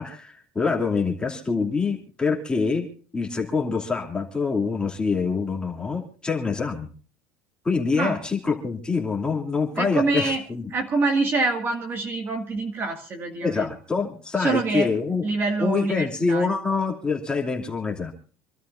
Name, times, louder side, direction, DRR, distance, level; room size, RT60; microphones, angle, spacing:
voice 1, 0.0-2.9 3.1-6.9 7.6-10.6 13.4-15.2 15.6-18.1, left 4 dB, 15° left, 0 dB, 2.8 m, -25 dB
voice 2, 9.8-10.4 10.7-13.7 14.4-14.9 15.2-16.5, right 3 dB, 35° right, 3 dB, 2.1 m, -25 dB
27.0 x 12.5 x 2.7 m, 0.41 s
cardioid pair, 135°, 7 cm